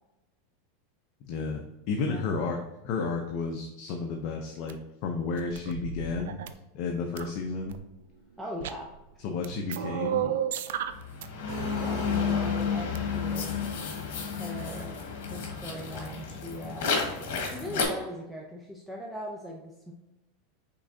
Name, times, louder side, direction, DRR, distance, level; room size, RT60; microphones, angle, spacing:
voice 1, 1.2-2.6 2.8-4.8 5.0-6.3 6.7-7.8 9.2-10.4, left 4 dB, 50° left, 3 dB, 0.6 m, -32 dB
sound 1, 4.7-4.8 5.3-6.5 7.2-7.8 8.5-9.1 9.4-11.3 11.5-11.7 12.8-13.0, right 10 dB, 80° right, 0.4 m, -33 dB
voice 2, 8.4-8.9 11.8-13.5 14.3-14.9 15.3-16.9 17.5-19.9, equal, 5° right, -2 dB, 0.6 m, -40 dB
sound 2, 10.9-17.8, left 6 dB, 70° left, 1.4 m, -31 dB
sound 3, 11.5-13.1, right 4 dB, 50° right, 1.4 m, -41 dB
5.5 x 3.6 x 2.7 m, 0.99 s
supercardioid pair, 140°, 0 cm